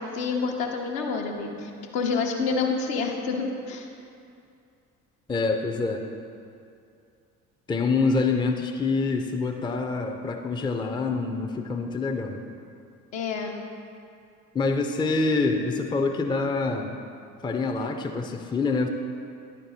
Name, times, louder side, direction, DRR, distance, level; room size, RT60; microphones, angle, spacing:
voice 1, 0.0-3.9 13.1-13.5, left 4 dB, 65° left, 1 dB, 1.0 m, -28 dB
voice 2, 5.3-6.0 7.7-12.4 14.5-17.0 17.4-18.9, left 3 dB, 10° left, 4 dB, 0.5 m, -26 dB
10.0 x 4.5 x 4.1 m, 2.4 s
figure-of-eight pair, 50°, 42 cm